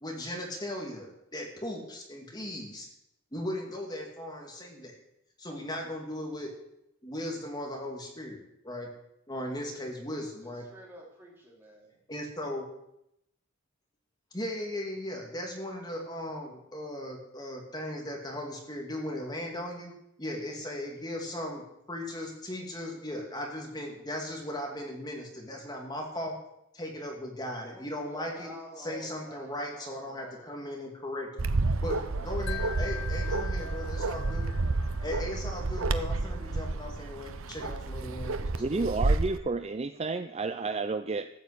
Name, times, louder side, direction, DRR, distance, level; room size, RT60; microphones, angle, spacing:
voice 1, 0.0-2.9 3.3-5.0 5.4-6.5 7.0-8.9 9.3-10.6 12.1-12.7 14.3-26.4 26.7-28.5 28.8-31.5 31.8-34.5 35.0-39.0, left 1 dB, 20° left, 1 dB, 2.6 m, -37 dB
voice 2, 10.4-12.0 27.7-30.5 31.8-32.7, right 1 dB, 10° right, -3 dB, 4.2 m, -50 dB
Bark, 31.4-39.4, right 2 dB, 75° right, 0.9 m, -30 dB
Wind chime, 32.5-35.6, left 10 dB, 60° left, 0.8 m, -43 dB
voice 3, 38.6-41.3, right 3 dB, 30° right, 10 dB, 0.5 m, -31 dB
14.0 x 8.9 x 8.3 m, 0.81 s
head